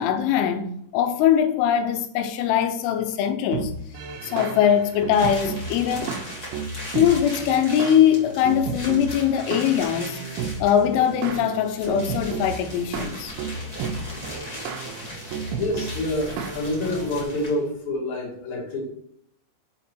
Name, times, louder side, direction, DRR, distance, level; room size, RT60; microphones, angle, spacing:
voice 1, 0.0-3.7 4.2-6.2 6.9-10.2 10.6-13.3, left 9 dB, 85° left, 3.3 m, -21 dB
sound 1, 3.5-17.2, right 5 dB, 75° right, 3.1 m, -33 dB
sound 2, 5.1-17.7, equal, 25° left, 0.8 m, -39 dB
voice 2, 15.6-18.9, left 1 dB, 45° left, 3.0 m, -27 dB
7.3 x 5.5 x 4.5 m
omnidirectional pair, 5.6 m